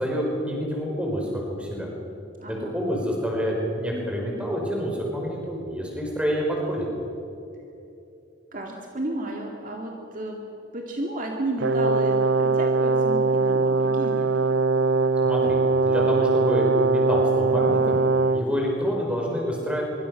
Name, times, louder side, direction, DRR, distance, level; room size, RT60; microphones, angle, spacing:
voice 1, 0.0-1.9 2.5-6.9 15.2-15.6 15.8-18.0 18.3-19.8, equal, 5° right, -1 dB, 5.2 m, -27 dB
voice 2, 2.4-2.7 8.5-10.4 10.7-14.3, right 1 dB, 40° right, 0 dB, 2.2 m, -32 dB
Brass instrument, 11.6-18.5, right 4 dB, 65° right, 0.7 m, -21 dB
24.5 x 24.0 x 6.5 m, 2.9 s
head